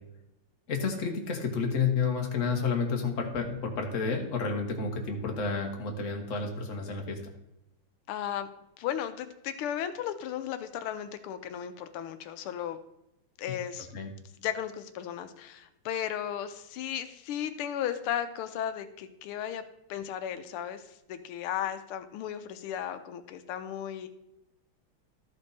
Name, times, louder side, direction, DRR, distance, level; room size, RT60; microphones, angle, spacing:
voice 1, 0.7-7.2 13.9-14.1, left 5 dB, 40° left, 2 dB, 1.5 m, -30 dB
voice 2, 8.1-8.5 8.8-12.8 13.4-13.9 14.4-19.6 19.9-24.1, left 10 dB, 90° left, 9 dB, 1.5 m, -35 dB
13.0 x 5.3 x 4.0 m, 0.87 s
omnidirectional pair, 2.4 m